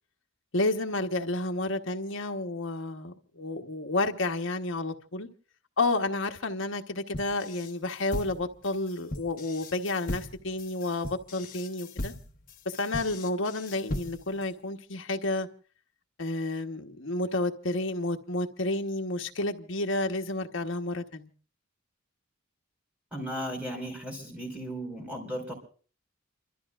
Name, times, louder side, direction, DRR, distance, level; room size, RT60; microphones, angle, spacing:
voice 1, 0.5-5.3 5.8-12.1 12.8-15.5 16.2-21.3, left 2 dB, 60° left, 1.2 m, -30 dB
sound 1, 7.1-14.4, left 1 dB, 40° left, 1.1 m, -38 dB
voice 2, 23.1-25.5, equal, 5° right, 5.0 m, -36 dB
29.0 x 13.5 x 2.5 m
head